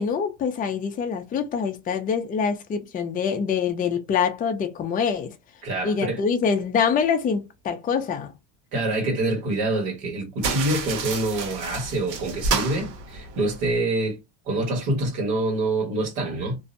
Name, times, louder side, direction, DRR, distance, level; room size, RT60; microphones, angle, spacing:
voice 1, 0.0-5.3 5.8-8.3, left 6 dB, 20° left, 0.3 m, -25 dB
voice 2, 5.6-6.2 8.7-14.2 14.5-16.6, right 2 dB, 70° right, 1.4 m, -26 dB
sound 1, 10.4-13.8, right 4 dB, 90° right, 1.1 m, -30 dB
2.6 x 2.0 x 2.5 m
supercardioid pair, 110°, 49 cm